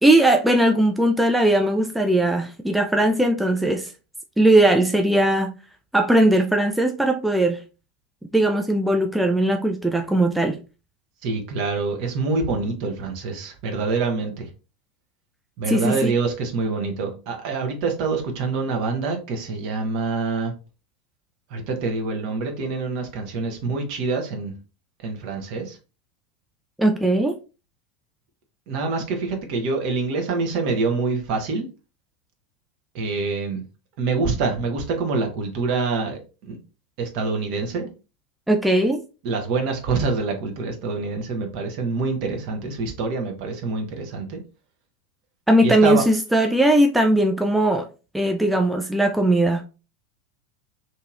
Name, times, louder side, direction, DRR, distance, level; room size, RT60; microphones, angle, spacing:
voice 1, 0.0-3.9 4.4-5.5 5.9-7.6 8.3-10.6 15.7-16.1 26.8-27.4 38.5-39.0 45.5-47.9 48.1-49.7, right 1 dB, 5° right, 0.3 m, -19 dB
voice 2, 11.2-14.5 15.6-20.5 21.5-24.5 25.0-25.8 28.7-31.7 32.9-33.6 34.0-36.6 37.0-37.9 39.2-44.4 45.6-46.0, right 4 dB, 50° right, 0.9 m, -26 dB
2.8 x 2.7 x 2.4 m
figure-of-eight pair, 80°, 0 cm